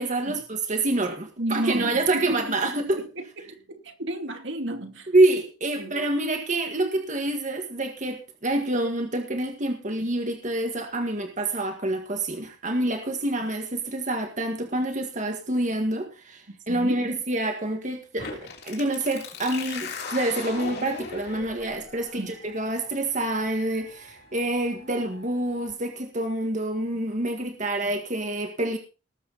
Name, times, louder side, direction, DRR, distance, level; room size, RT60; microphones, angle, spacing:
voice 1, 0.0-3.0 5.1-28.8, right 2 dB, 40° right, 1.8 m, -27 dB
voice 2, 1.4-5.1 5.8-6.0 16.7-17.0 22.1-22.3, right 1 dB, 70° right, 2.6 m, -33 dB
sound 1, 18.2-25.7, left 4 dB, 60° left, 3.3 m, -39 dB
19.5 x 7.5 x 4.1 m
head